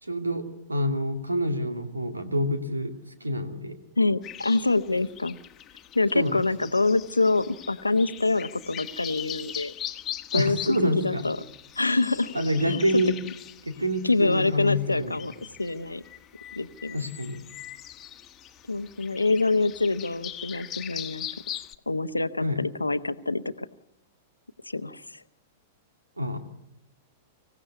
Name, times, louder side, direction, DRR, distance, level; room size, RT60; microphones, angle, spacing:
voice 1, 0.0-2.9 3.2-3.8 6.1-6.4 10.3-11.3 12.3-13.1 13.6-15.2 16.9-17.4 22.4-22.6 26.2-26.4, equal, 85° right, 7 dB, 2.4 m, -27 dB
voice 2, 4.0-5.4 5.9-9.7 10.3-11.4 11.8-12.3 12.6-12.8 14.0-15.3 15.6-16.0 16.6-17.1 18.7-21.3 21.9-23.7 24.7-25.2, left 3 dB, 85° left, 13 dB, 0.9 m, -26 dB
sound 1, 4.2-21.7, left 11 dB, 30° left, 1.3 m, -41 dB
25.5 x 16.0 x 8.2 m, 0.79 s
figure-of-eight pair, 100°, 0 cm